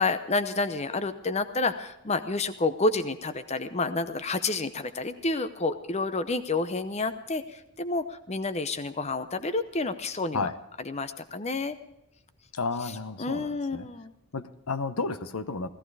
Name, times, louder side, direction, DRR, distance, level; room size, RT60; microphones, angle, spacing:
voice 1, 0.0-10.5 10.8-11.8 13.2-14.1, left 3 dB, 30° left, 11 dB, 0.7 m, -29 dB
voice 2, 12.5-13.9 14.3-15.7, left 4 dB, 80° left, 12 dB, 1.0 m, -32 dB
16.5 x 14.5 x 4.9 m, 0.84 s
head